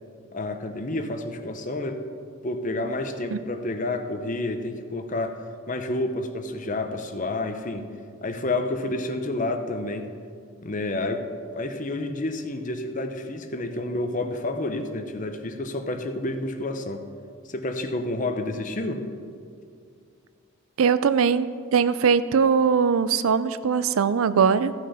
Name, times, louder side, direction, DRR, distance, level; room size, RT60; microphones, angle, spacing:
voice 1, 0.3-2.0 2.4-5.4 5.7-7.9 8.2-10.1 10.6-11.2 11.5-17.0 17.5-19.0, left 2 dB, 40° left, 6 dB, 0.8 m, -29 dB
voice 2, 20.8-24.7, right 6 dB, 85° right, 14 dB, 0.4 m, -21 dB
15.0 x 6.0 x 5.6 m, 2.3 s
head